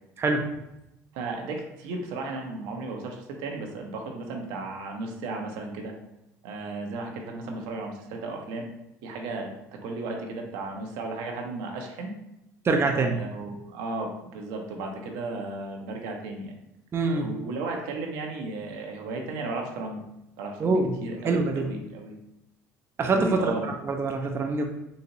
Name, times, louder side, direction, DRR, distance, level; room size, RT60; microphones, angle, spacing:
voice 1, 1.1-5.9 6.4-8.7 9.0-9.5 9.8-12.1 13.1-16.6 17.1-20.0 20.4-22.2 23.1-23.7, right 3 dB, 75° right, 2 dB, 0.7 m, -34 dB
voice 2, 12.6-13.2 16.9-17.3 20.6-20.9 21.2-21.7 23.0-24.7, right 3 dB, 30° right, 3 dB, 0.5 m, -25 dB
4.0 x 2.8 x 2.8 m, 0.88 s
hypercardioid pair, 75°, 8 cm